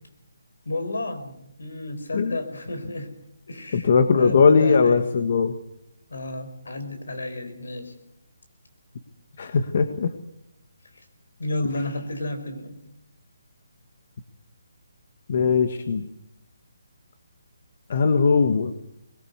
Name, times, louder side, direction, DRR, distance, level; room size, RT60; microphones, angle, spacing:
voice 1, 0.6-3.2 3.5-5.1 6.1-7.9 11.4-12.8, left 2 dB, 80° left, 8 dB, 5.1 m, -32 dB
voice 2, 3.7-5.5 9.4-10.1 15.3-16.1 17.9-18.7, left 5 dB, 45° left, 8 dB, 1.6 m, -19 dB
21.0 x 19.5 x 8.1 m, 0.78 s
hypercardioid pair, 165°, 0 cm